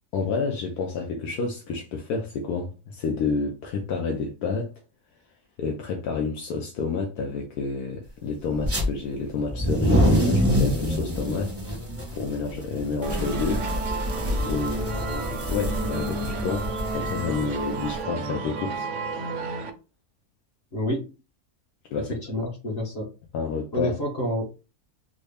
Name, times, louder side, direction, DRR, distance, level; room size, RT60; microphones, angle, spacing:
voice 1, 0.1-4.7 5.6-11.5 12.1-13.6 14.4-18.9 21.9-22.1 23.3-23.9, left 5 dB, 80° left, 1.2 m, -29 dB
sound 1, 8.6-8.8 9.4-17.9, equal, 15° right, 0.7 m, -26 dB
sound 2, 13.0-19.7, right 4 dB, 65° right, 0.8 m, -31 dB
voice 2, 20.7-21.1 22.0-23.1 23.7-24.7, equal, 45° left, 1.1 m, -29 dB
4.0 x 2.1 x 3.3 m
omnidirectional pair, 1.6 m